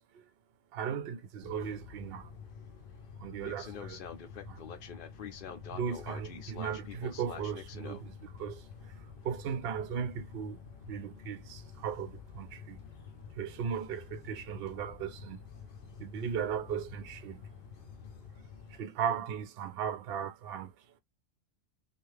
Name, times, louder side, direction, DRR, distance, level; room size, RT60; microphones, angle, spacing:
voice 1, 0.7-2.3 3.2-4.0 4.5-4.7 5.7-10.6 10.9-12.8 13.3-15.4 16.0-17.5 18.7-20.7, right 7 dB, 65° right, 0.7 m, -37 dB
sound 1, 1.4-18.8, left 6 dB, 55° left, 0.7 m, -47 dB
2.7 x 2.3 x 3.2 m
omnidirectional pair, 1.2 m